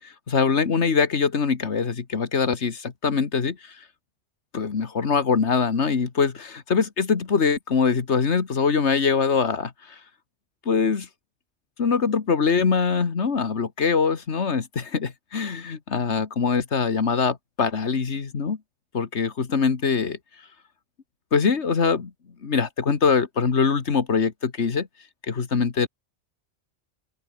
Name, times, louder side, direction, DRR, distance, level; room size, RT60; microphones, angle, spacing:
voice 1, 0.3-3.6 4.5-9.7 10.7-11.1 11.8-18.6 18.9-20.2 21.3-22.1 22.4-24.9 25.3-25.9, left 5 dB, 70° left, 2.0 m, -23 dB
open air
omnidirectional pair, 1.2 m